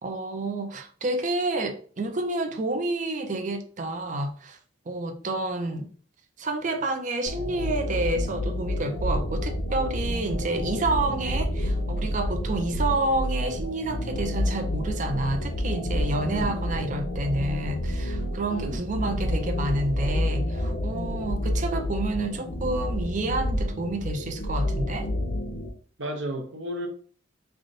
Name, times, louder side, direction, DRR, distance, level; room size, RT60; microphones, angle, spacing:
voice 1, 0.0-4.6 4.9-5.9 6.4-25.1, right 2 dB, 40° right, 0.5 m, -29 dB
sound 1, 7.3-25.7, left 1 dB, 65° left, 0.9 m, -29 dB
voice 2, 16.3-16.6 18.5-18.8 26.0-26.9, equal, 70° right, 0.9 m, -33 dB
3.4 x 2.5 x 3.9 m
head